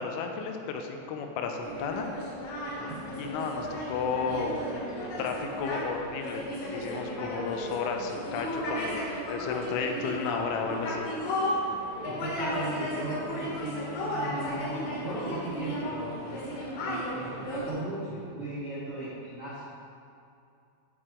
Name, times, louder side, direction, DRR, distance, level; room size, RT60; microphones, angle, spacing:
voice 1, 0.0-2.1 3.2-4.6 5.0-6.4 6.7-11.1, left 5 dB, 85° left, 4 dB, 3.0 m, -33 dB
sound 1, 1.6-17.7, equal, 65° left, 3.0 m, -34 dB
voice 2, 12.0-16.2 16.8-19.6, right 1 dB, 85° right, -11 dB, 1.2 m, -37 dB
10.0 x 4.7 x 3.7 m, 2.6 s
omnidirectional pair, 5.5 m